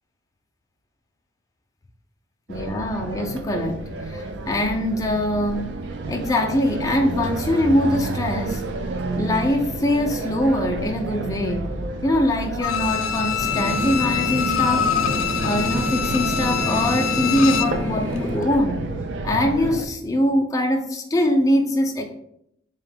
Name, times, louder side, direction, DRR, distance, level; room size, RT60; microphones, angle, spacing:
voice 1, 2.5-5.8 6.1-8.6 9.2-11.7 12.0-15.0 15.4-18.9 19.2-22.0, left 1 dB, 15° left, 3 dB, 0.4 m, -23 dB
sound 1, 2.5-19.9, right 2 dB, 60° right, 0.4 m, -30 dB
Bowed string instrument, 12.6-17.8 18.2-18.3, left 9 dB, 85° left, 0.3 m, -25 dB
sound 2, 13.4-18.4, equal, 75° right, 0.9 m, -29 dB
3.7 x 2.1 x 4.0 m, 0.74 s
head